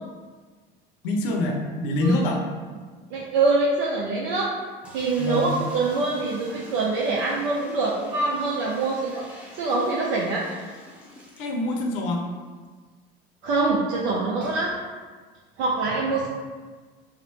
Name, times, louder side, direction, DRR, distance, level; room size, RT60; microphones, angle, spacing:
voice 1, 1.0-2.4 5.2-5.5 11.4-12.3, left 1 dB, 65° left, 1 dB, 0.7 m, -25 dB
voice 2, 3.1-4.5 4.9-10.5 13.4-14.7 15.6-16.3, right 3 dB, 50° right, -4 dB, 0.6 m, -24 dB
sound 1, 4.8-12.0 12.3-12.4 12.6-12.7 14.4-14.8, equal, 5° right, 0.8 m, -46 dB
3.6 x 2.1 x 4.4 m, 1.5 s
figure-of-eight pair, 70°, 29 cm